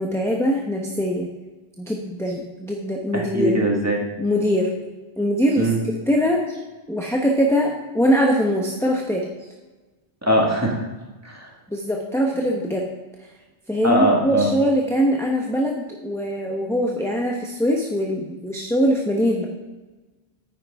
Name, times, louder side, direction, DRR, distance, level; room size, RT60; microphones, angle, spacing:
voice 1, 0.0-1.3 1.8-3.5 4.2-4.7 5.2-5.7 6.1-6.6 6.9-9.3 11.7-12.9 13.7-19.4, equal, 5° left, -1 dB, 0.8 m, -22 dB
voice 2, 3.1-4.1 5.6-5.8 10.2-10.8 11.2-11.5 13.8-14.5, right 1 dB, 15° right, -1 dB, 1.7 m, -21 dB
9.6 x 9.2 x 3.5 m, 1.2 s
omnidirectional pair, 1.1 m